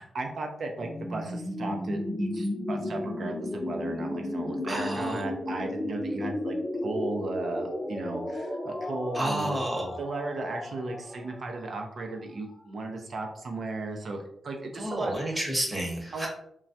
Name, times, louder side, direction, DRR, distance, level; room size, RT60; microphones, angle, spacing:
voice 1, 0.0-6.6 6.8-9.6 10.0-15.4 16.1-16.3, right 2 dB, 65° right, 3 dB, 0.6 m, -35 dB
sound 1, 0.7-12.5, left 1 dB, 20° left, 0.6 m, -34 dB
voice 2, 4.6-5.2 9.1-9.9 14.8-16.3, right 1 dB, 15° right, -1 dB, 0.9 m, -30 dB
3.2 x 2.3 x 2.6 m, 0.72 s
cardioid pair, 80°, 0 cm